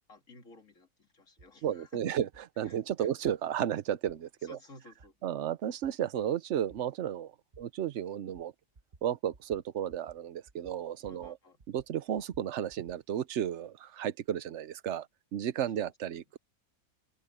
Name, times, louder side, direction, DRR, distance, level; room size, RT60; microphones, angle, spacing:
voice 1, 0.1-2.2 2.6-3.1 4.4-5.1 11.1-11.6 15.8-15.9, left 3 dB, 50° left, 2.4 m, -55 dB
sound 1, 1.4-1.5 2.3-2.4 3.2-3.4 4.1-4.2 5.0-5.1 5.8-5.9 6.7-6.8 7.5-7.6 8.3-8.5 8.7-9.1 9.3-9.6 9.9-10.2 10.5-11.3 11.6-13.0, right 3 dB, 30° right, 1.0 m, -57 dB
voice 2, 1.6-2.3 2.6-4.6 5.2-8.5 9.0-11.4 11.7-15.1 15.3-16.4, right 10 dB, 60° right, 0.9 m, -33 dB
omnidirectional pair, 1.7 m